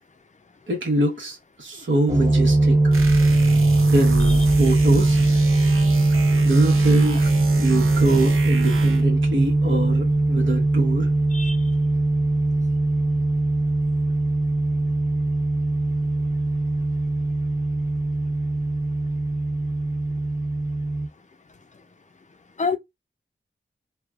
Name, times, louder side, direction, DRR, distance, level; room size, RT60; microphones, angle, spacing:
voice 1, 0.7-3.0 3.9-5.2 6.4-7.2 7.6-11.1, right 2 dB, 65° right, 1.1 m, -24 dB
sound 1, 2.1-21.1, right 2 dB, 15° right, 0.9 m, -20 dB
sound 2, 2.9-9.2, right 4 dB, 90° right, 0.6 m, -31 dB
voice 2, 11.3-12.0 21.5-21.9 22.6-22.8, left 4 dB, 35° left, 0.5 m, -30 dB
3.3 x 2.2 x 2.4 m
wide cardioid pair, 65°, 21 cm